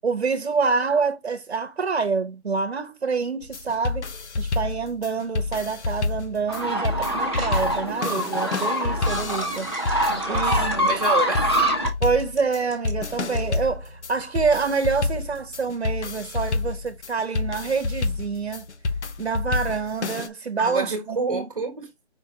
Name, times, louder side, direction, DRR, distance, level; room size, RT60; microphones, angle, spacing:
voice 1, 0.0-4.1 4.4-9.7 10.3-10.9 12.0-18.6 19.2-21.5, right 5 dB, 70° right, 1.0 m, -27 dB
sound 1, 3.4-20.3, left 3 dB, 85° left, 0.8 m, -29 dB
sound 2, 6.5-11.9, right 1 dB, 25° left, 0.6 m, -25 dB
sound 3, 7.3-7.7 8.2-8.8 9.4-13.6, right 2 dB, ahead, 0.9 m, -40 dB
voice 2, 10.1-11.5 20.6-21.9, right 3 dB, 35° right, 1.2 m, -28 dB
5.3 x 2.4 x 4.0 m
hypercardioid pair, 175°, 33 cm